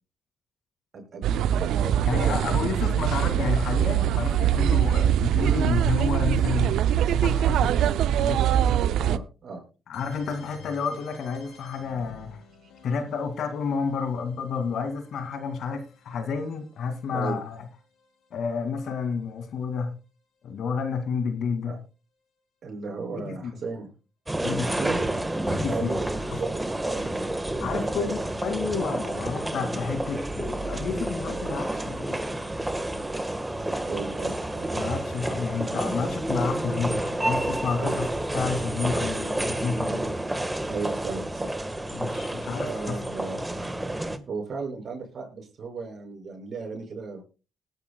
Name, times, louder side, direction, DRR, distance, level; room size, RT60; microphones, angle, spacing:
voice 1, 0.9-2.7 9.0-9.6 12.6-12.7 17.1-17.4 21.7-21.8 22.6-23.9 24.8-25.0 25.6-26.1 26.3-27.0 27.7-28.1 33.9-34.7 37.8-38.0 40.7-41.5 42.5-43.4 44.3-47.2, right 4 dB, 55° right, 6.1 m, -35 dB
sound 1, 1.2-9.2, right 10 dB, 80° right, 0.5 m, -23 dB
voice 2, 2.0-6.7 7.0-7.7 8.2-8.4 9.9-12.4 12.8-17.6 18.3-19.9 20.4-21.7 23.1-23.5 24.4-24.7 25.5-25.9 26.3-26.4 27.6-32.3 34.7-38.1 38.3-40.1 41.9-43.0 43.3-43.4, left 5 dB, 70° left, 2.4 m, -30 dB
sound 2, 9.9-19.7, left 4 dB, 90° left, 4.7 m, -52 dB
sound 3, 24.3-44.2, right 1 dB, 15° right, 1.5 m, -29 dB
19.5 x 10.5 x 2.3 m
supercardioid pair, 65°, 0 cm